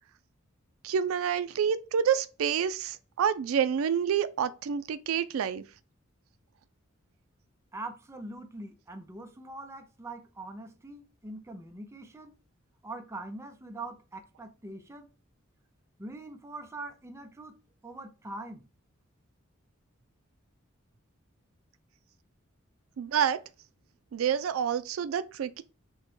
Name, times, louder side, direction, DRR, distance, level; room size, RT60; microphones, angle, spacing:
voice 1, 0.8-5.6 23.0-23.4 24.1-25.6, right 8 dB, 85° right, 0.4 m, -28 dB
voice 2, 7.7-12.4 12.8-15.1 16.0-17.6 17.8-18.7, right 2 dB, 15° right, 0.5 m, -43 dB
6.2 x 2.2 x 3.1 m
head